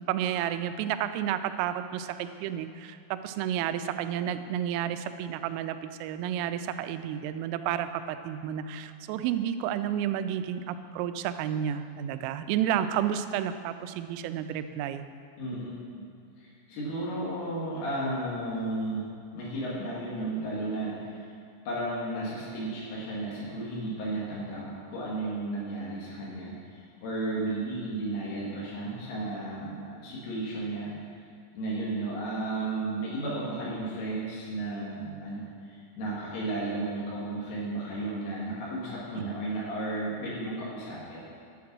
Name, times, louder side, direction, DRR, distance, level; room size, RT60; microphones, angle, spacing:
voice 1, 0.0-15.0 39.2-39.3, right 10 dB, 85° right, 9 dB, 3.1 m, -31 dB
voice 2, 15.4-16.0 16.4-21.3 21.7-31.0 31.5-41.2, right 2 dB, 75° left, -7 dB, 4.3 m, -34 dB
10.5 x 7.7 x 6.0 m, 2.3 s
omnidirectional pair, 5.9 m